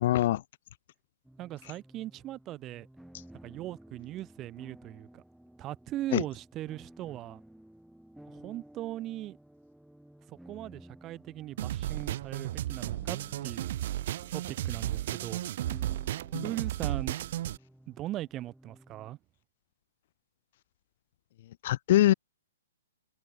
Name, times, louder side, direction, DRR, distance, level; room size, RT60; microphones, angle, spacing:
voice 1, 0.0-0.4 6.1-6.2 16.3-16.4 21.6-22.1, left 14 dB, 50° left, 0.5 m, -23 dB
sound 1, 1.2-19.1, right 1 dB, ahead, 3.9 m, -55 dB
voice 2, 1.4-2.9 3.4-5.2 5.6-7.4 8.3-9.4 10.3-13.7 14.3-15.7 16.4-17.1 17.9-19.2, right 14 dB, 25° right, 1.8 m, -39 dB
sound 2, 11.6-17.6, right 13 dB, 50° right, 1.3 m, -34 dB
open air
hypercardioid pair, 125°, 0 cm